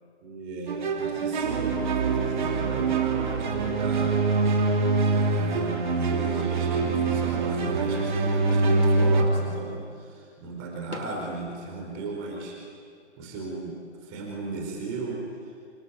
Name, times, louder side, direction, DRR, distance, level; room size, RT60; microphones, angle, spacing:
voice 1, 0.2-4.2 5.1-12.6 13.2-15.6, right 3 dB, 20° right, 0 dB, 4.6 m, -36 dB
sound 1, 0.7-9.2, right 3 dB, 40° right, 2.9 m, -24 dB
sound 2, 6.3-6.8 8.5-9.1 9.5-9.6 10.7-11.5, left 2 dB, 70° left, 3.1 m, -41 dB
27.0 x 22.5 x 9.6 m, 2.1 s
figure-of-eight pair, 145°, 36 cm